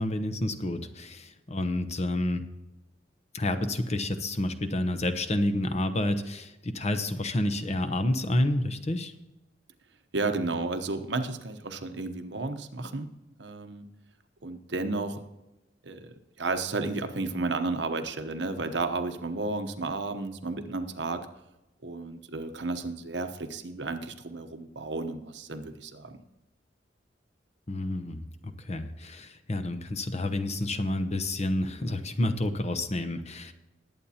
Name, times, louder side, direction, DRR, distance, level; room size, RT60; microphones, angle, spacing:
voice 1, 0.0-2.4 3.3-9.1 27.7-33.5, left 1 dB, 40° left, 8 dB, 0.9 m, -29 dB
voice 2, 10.1-13.1 13.4-13.9 14.4-15.2 15.8-21.3 21.8-26.2, right 3 dB, 70° right, 8 dB, 0.9 m, -32 dB
20.0 x 8.4 x 2.9 m, 0.99 s
head